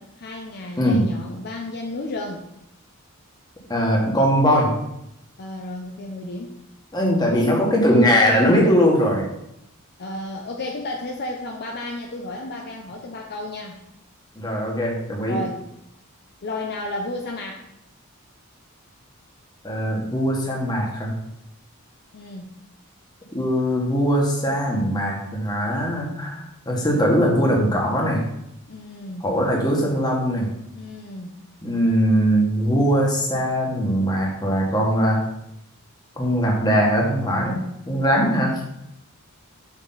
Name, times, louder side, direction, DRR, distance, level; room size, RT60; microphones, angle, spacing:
voice 1, 0.0-2.4 5.4-6.6 10.0-13.8 15.3-15.6 16.4-17.7 22.1-22.5 28.7-29.3 30.7-31.4, left 1 dB, 50° left, 1 dB, 0.7 m, -32 dB
voice 2, 3.7-4.7 6.9-9.3 14.3-15.4 19.6-21.1 23.3-28.2 29.2-30.5 31.6-35.2 36.2-37.6 37.8-38.6, equal, 20° left, -2 dB, 1.5 m, -20 dB
6.5 x 5.0 x 4.0 m, 0.81 s
head